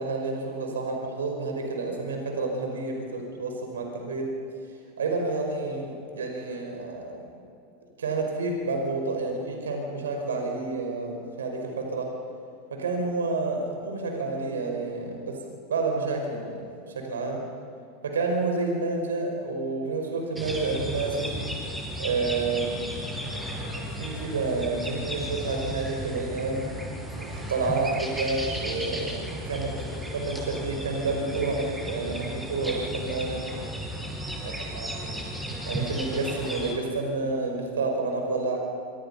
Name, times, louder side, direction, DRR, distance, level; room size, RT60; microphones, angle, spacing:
voice 1, 0.0-4.3 5.0-7.3 8.0-12.1 12.7-15.4 15.7-16.6 16.9-17.4 18.0-21.3 22.0-23.0 23.2-26.7 27.2-33.4 34.4-35.2 35.7-38.6, right 3 dB, 80° right, 2 dB, 5.3 m, -29 dB
sound 1, 20.4-36.7, equal, 10° right, 8.0 m, -34 dB
27.0 x 26.0 x 5.7 m, 2.6 s
hypercardioid pair, 90°, 0 cm